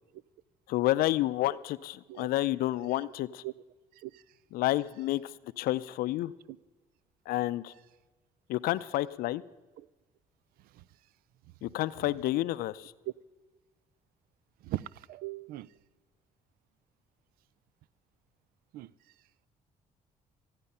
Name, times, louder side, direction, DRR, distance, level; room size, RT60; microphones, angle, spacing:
voice 1, 0.7-3.4 4.5-6.3 7.3-7.7 8.5-9.4 11.6-12.9, left 15 dB, 75° left, 0.5 m, -30 dB
voice 2, 14.6-15.7 18.7-18.9, right 15 dB, 70° right, 0.4 m, -39 dB
15.0 x 9.6 x 5.5 m
supercardioid pair, 65°, 15 cm